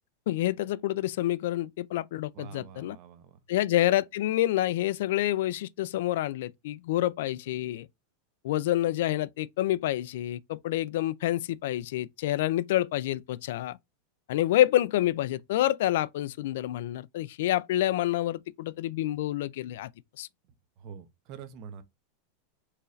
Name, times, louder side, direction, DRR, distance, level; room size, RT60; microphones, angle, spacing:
voice 1, 0.3-3.0 3.5-7.9 8.4-13.8 14.3-19.9 20.2-20.3, left 14 dB, 65° left, 0.3 m, -28 dB
voice 2, 2.3-3.4 20.8-21.8, right 7 dB, 40° right, 0.7 m, -45 dB
4.6 x 3.1 x 2.5 m
supercardioid pair, 165°, 0 cm